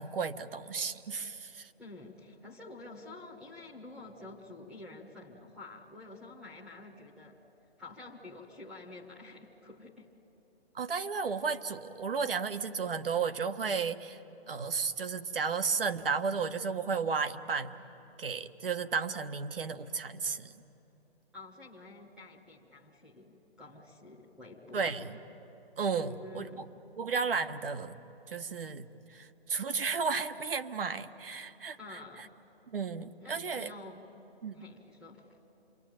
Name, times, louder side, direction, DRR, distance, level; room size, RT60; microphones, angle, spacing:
voice 1, 0.0-1.7 10.7-14.2 14.5-17.7 18.2-20.5 24.7-25.2 25.8-26.5 27.0-28.0 28.3-31.8 32.7-33.7 34.4-34.6, right 5 dB, 60° right, 8 dB, 1.4 m, -33 dB
voice 2, 1.8-7.4 7.8-10.1 21.3-25.1 26.0-26.7 31.8-32.3 33.2-34.1 34.5-35.4, left 2 dB, 5° right, -4 dB, 1.1 m, -49 dB
27.5 x 23.0 x 9.2 m, 3.0 s
hypercardioid pair, 165°, 32 cm